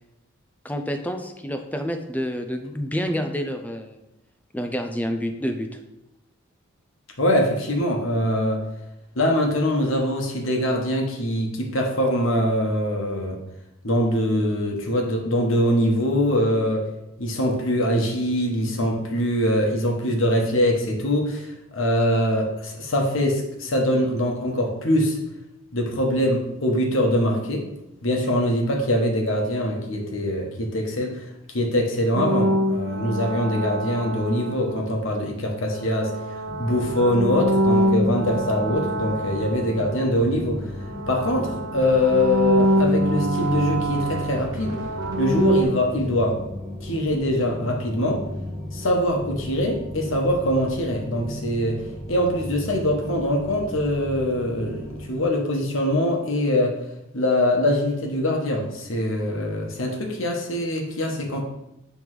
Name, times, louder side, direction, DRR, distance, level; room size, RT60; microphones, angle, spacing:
voice 1, 0.6-4.0 4.5-5.8, equal, 5° left, 6 dB, 0.5 m, -28 dB
voice 2, 7.2-8.6 9.1-13.4 13.8-16.9 17.2-25.2 25.7-27.7 28.0-36.1 36.6-40.6 41.1-44.8 45.2-46.4 46.8-48.2 48.7-56.8 57.1-61.4, left 1 dB, 65° left, 1 dB, 1.2 m, -23 dB
sound 1, 32.1-35.0 35.7-40.5 40.8-45.6, equal, 70° right, 0.7 m, -25 dB
sound 2, 36.4-55.1, left 1 dB, 20° right, 1.4 m, -36 dB
7.7 x 3.5 x 4.8 m, 0.90 s
head